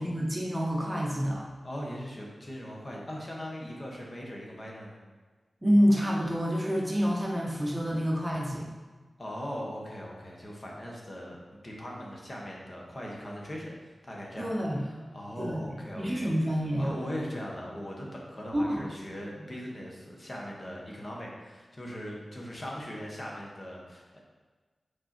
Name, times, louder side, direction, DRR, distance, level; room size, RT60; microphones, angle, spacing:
voice 1, 0.0-1.4 5.6-8.7 14.4-14.8 15.4-16.9 18.5-18.9 19.4-19.5, equal, 15° right, -2 dB, 1.0 m, -28 dB
voice 2, 1.6-5.0 9.2-11.4 11.6-14.5 14.8-16.3 16.8-24.2, equal, 35° left, -2 dB, 1.4 m, -40 dB
5.4 x 4.5 x 4.4 m, 1.3 s
wide cardioid pair, 75°, 0 cm